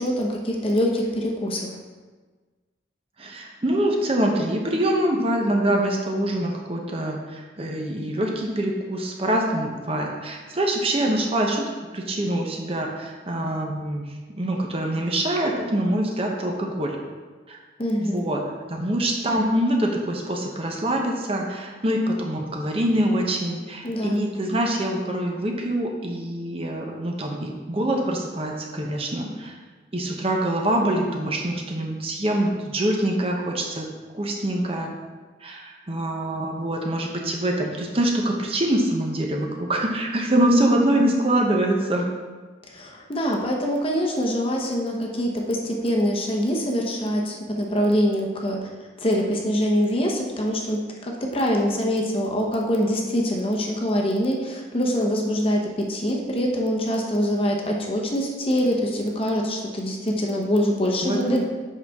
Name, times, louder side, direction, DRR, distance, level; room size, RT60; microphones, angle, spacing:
voice 1, 0.0-1.7 17.8-18.2 23.8-24.3 42.7-48.7 49.0-61.4, equal, 30° left, 0 dB, 0.9 m, -24 dB
voice 2, 3.2-14.0 14.4-17.0 17.5-17.6 18.0-18.4 18.7-29.6 29.9-33.9 34.1-34.9 35.4-42.1 61.0-61.2, right 1 dB, 30° right, 0 dB, 0.8 m, -24 dB
7.6 x 5.7 x 3.6 m, 1.4 s
head